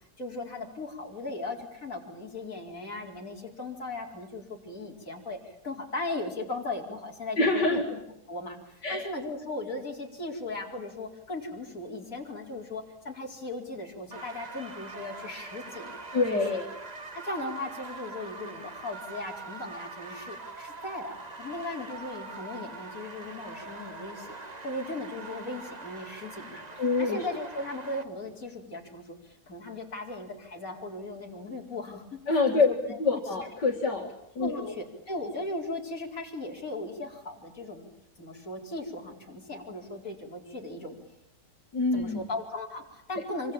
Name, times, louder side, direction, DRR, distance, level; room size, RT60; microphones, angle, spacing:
voice 1, 0.2-8.0 8.3-16.0 17.1-24.4 24.6-26.6 27.0-32.7 34.4-37.9 38.2-41.0 41.9-43.5, left 2 dB, 50° left, 0 dB, 4.9 m, -37 dB
voice 2, 7.4-7.8 8.8-9.1 16.1-16.7 26.8-27.3 32.3-32.7 33.0-34.7 41.7-42.2, left 3 dB, 75° left, 0 dB, 3.0 m, -26 dB
sound 1, 14.1-28.0, right 3 dB, 25° right, 1.6 m, -43 dB
25.5 x 25.0 x 8.9 m, 0.79 s
omnidirectional pair, 1.9 m